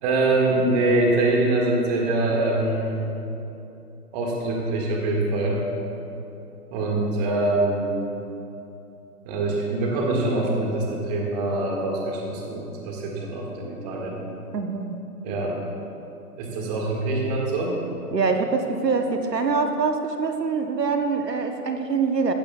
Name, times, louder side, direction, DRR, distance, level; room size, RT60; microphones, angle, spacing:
voice 1, 0.0-3.0 4.1-5.6 6.7-7.9 9.3-14.2 15.2-15.6 16.4-17.8, right 2 dB, 25° right, -1 dB, 1.7 m, -24 dB
voice 2, 14.5-15.0 18.1-22.3, right 4 dB, 85° right, 5 dB, 1.0 m, -24 dB
15.5 x 12.5 x 2.3 m, 2.9 s
figure-of-eight pair, 135°, 47 cm